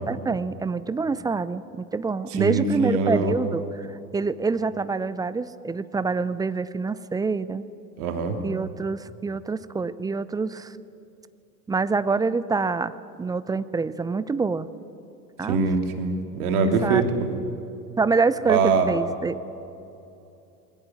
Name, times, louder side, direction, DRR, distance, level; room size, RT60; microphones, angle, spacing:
voice 1, 0.0-3.6 4.1-7.6 8.4-10.7 11.7-12.9 13.2-14.7 15.4-15.6 16.8-17.0 18.0-19.4, right 4 dB, 10° right, 15 dB, 0.5 m, -26 dB
voice 2, 2.3-3.3 8.0-8.4 15.5-17.1 18.5-18.9, right 4 dB, 65° right, 4 dB, 3.0 m, -23 dB
22.0 x 18.0 x 9.8 m, 2.8 s
figure-of-eight pair, 85°, 48 cm